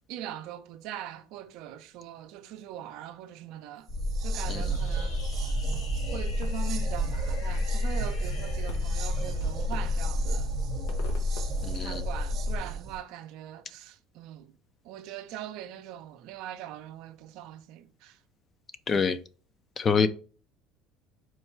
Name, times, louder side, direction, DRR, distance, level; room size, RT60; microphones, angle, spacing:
voice 1, 0.1-3.9 4.2-5.3 6.1-10.5 11.7-14.5 14.8-18.2, right 11 dB, 70° right, 0.5 m, -41 dB
sound 1, 3.9-12.6, left 3 dB, 60° left, 1.0 m, -31 dB
sound 2, 3.9-13.0, right 8 dB, 50° right, 0.8 m, -35 dB
Fireworks, 4.4-12.5, left 4 dB, 90° left, 0.9 m, -48 dB
voice 2, 11.6-12.0 18.9-19.2 19.8-20.1, left 5 dB, 35° left, 0.5 m, -25 dB
4.5 x 2.3 x 4.4 m
supercardioid pair, 105°, 0 cm